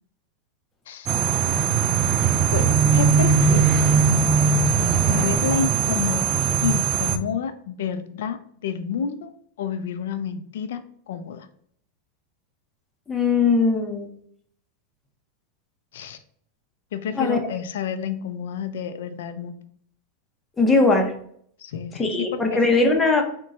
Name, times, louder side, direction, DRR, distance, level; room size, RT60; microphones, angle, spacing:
voice 1, 0.9-1.2 2.5-3.8 5.1-6.3 6.6-9.3 9.6-11.5 15.9-16.2 16.9-19.6 21.6-22.6, left 7 dB, 80° left, 9 dB, 0.4 m, -29 dB
sound 1, 1.1-7.2, right 6 dB, 35° right, 0.3 m, -20 dB
voice 2, 13.1-14.1 17.2-17.4 20.6-21.1 21.9-23.2, left 3 dB, 10° left, 2 dB, 0.6 m, -20 dB
3.7 x 2.2 x 4.0 m, 0.64 s
supercardioid pair, 140°, 0 cm